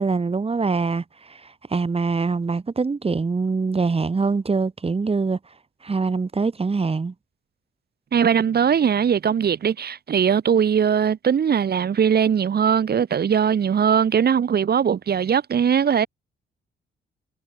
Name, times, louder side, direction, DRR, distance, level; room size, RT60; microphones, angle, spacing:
voice 1, 0.0-5.4 5.8-7.1, right 4 dB, 30° right, 6.8 m, -24 dB
voice 2, 8.1-16.1, right 7 dB, 50° right, 7.1 m, -20 dB
cardioid pair, 90°, 20 cm